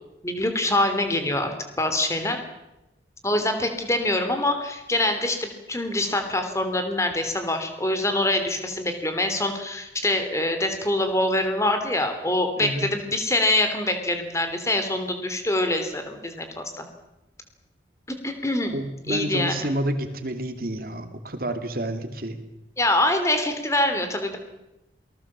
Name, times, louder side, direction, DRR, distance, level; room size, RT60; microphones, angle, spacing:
voice 1, 0.2-2.4 3.2-16.8 18.2-18.7 19.1-19.7 22.8-24.4, left 1 dB, 15° left, 7 dB, 3.0 m, -25 dB
voice 2, 18.7-22.4, right 1 dB, 50° right, 8 dB, 2.5 m, -29 dB
28.0 x 19.0 x 7.4 m, 0.95 s
head